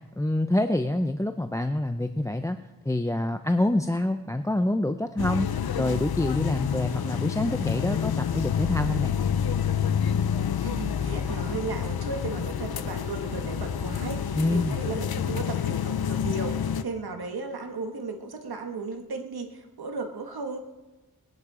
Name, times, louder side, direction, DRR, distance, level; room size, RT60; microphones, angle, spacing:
voice 1, 0.2-2.6 2.8-5.5 5.8-9.1 14.3-14.8, left 1 dB, 10° left, 8 dB, 0.7 m, -26 dB
sound 1, 5.2-16.8, left 8 dB, 75° left, 0.7 m, -28 dB
voice 2, 10.6-20.6, right 4 dB, 85° right, 4 dB, 1.7 m, -35 dB
21.0 x 11.0 x 5.0 m, 1.2 s
wide cardioid pair, 60°, 37 cm